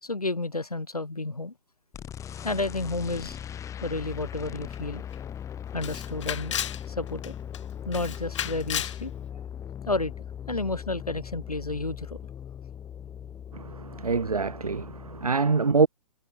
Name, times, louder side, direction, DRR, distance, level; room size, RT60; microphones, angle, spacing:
voice 1, 0.0-1.5 2.4-3.4 3.8-5.1 5.7-6.6 6.9-7.3 7.9-9.4 9.9-10.1 10.5-12.2, left 2 dB, 90° left, 2.6 m, -31 dB
sound 1, 1.9-15.3, left 9 dB, 15° left, 4.0 m, -39 dB
Camera, 4.7-4.8 5.1-5.2 5.8-6.8 7.2-7.6 7.9-9.0, left 10 dB, 55° left, 3.1 m, -33 dB
voice 2, 13.5-15.9, right 4 dB, 80° right, 3.5 m, -25 dB
figure-of-eight pair, 120°, 19 cm